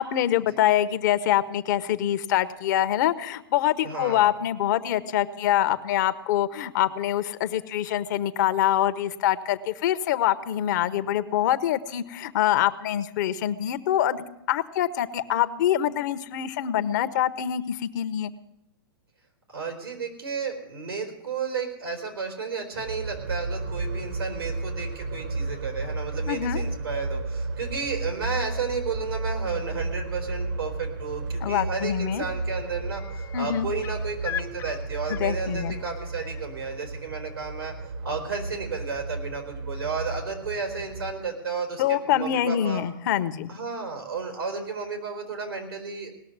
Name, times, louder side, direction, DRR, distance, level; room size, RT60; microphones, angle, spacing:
voice 1, 0.0-18.3 26.3-26.6 31.4-32.2 33.3-33.7 35.1-35.8 41.8-43.5, left 11 dB, 55° left, 13 dB, 0.8 m, -25 dB
voice 2, 3.8-4.3 19.5-37.7 38.0-42.8 43.5-46.1, right 5 dB, 90° right, 3 dB, 3.8 m, -33 dB
sound 1, 22.7-41.1, right 3 dB, 60° right, 1.3 m, -33 dB
sound 2, 32.0-32.1 32.4-36.4 38.1-38.2, left 10 dB, 20° left, 0.5 m, -40 dB
18.5 x 6.5 x 9.4 m, 0.84 s
hypercardioid pair, 120°, 12 cm